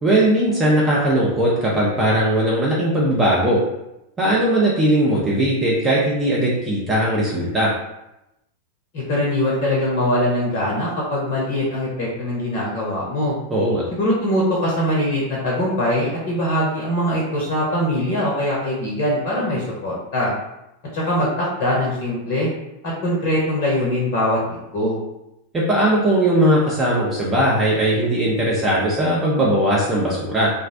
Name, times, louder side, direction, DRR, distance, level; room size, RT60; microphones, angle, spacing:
voice 1, 0.0-3.6 4.2-7.7 13.5-13.8 25.5-30.5, right 1 dB, 15° right, -5 dB, 0.5 m, -19 dB
voice 2, 8.9-13.3 13.9-20.3 20.9-22.5 22.8-24.4 24.7-25.0, left 1 dB, 45° left, -4 dB, 0.6 m, -22 dB
2.4 x 2.0 x 2.5 m, 0.89 s
figure-of-eight pair, 90°, 0 cm